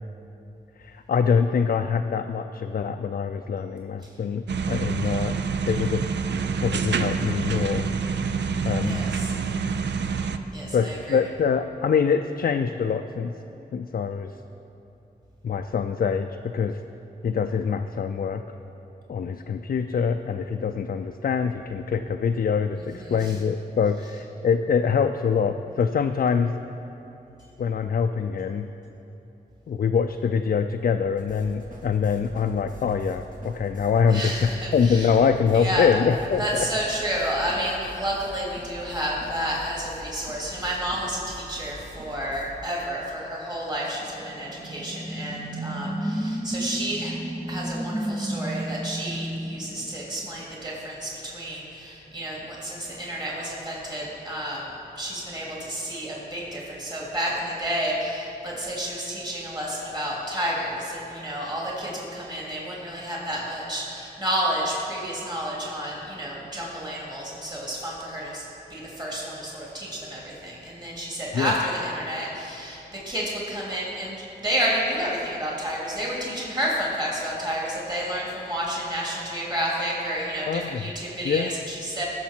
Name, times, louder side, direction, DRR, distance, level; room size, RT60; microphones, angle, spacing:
voice 1, 0.8-5.3 5.6-6.0 6.6-7.9 8.6-9.0 10.7-13.3 13.7-14.3 15.4-16.8 17.2-18.4 19.1-26.5 27.6-28.7 29.7-36.7 71.3-71.6 80.5-80.8 81.2-81.5, left 6 dB, 55° left, 6 dB, 0.4 m, -24 dB
sound 1, 4.5-10.4, right 5 dB, 85° right, 0.5 m, -27 dB
voice 2, 8.8-9.3 10.5-11.2 22.7-23.4 34.1-35.2 35.5-35.9 36.4-47.1 47.5-68.4 68.7-82.1, equal, 25° right, -5 dB, 2.8 m, -30 dB
sound 2, 31.2-42.6, equal, 50° right, 1.7 m, -44 dB
sound 3, 44.0-50.5, right 1 dB, 5° right, 0.6 m, -32 dB
16.0 x 6.6 x 4.5 m, 2.9 s
cardioid pair, 60°, 18 cm